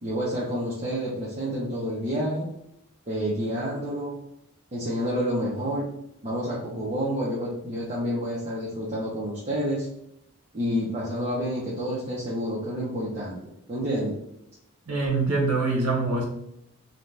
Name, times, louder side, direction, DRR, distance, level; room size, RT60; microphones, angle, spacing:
voice 1, 0.0-2.5 3.1-4.2 4.7-5.9 6.2-9.9 10.5-13.4 13.7-14.2, equal, 30° right, -6 dB, 0.5 m, -29 dB
voice 2, 14.9-16.3, right 3 dB, 85° right, 0 dB, 0.8 m, -24 dB
2.6 x 2.1 x 3.1 m, 0.79 s
head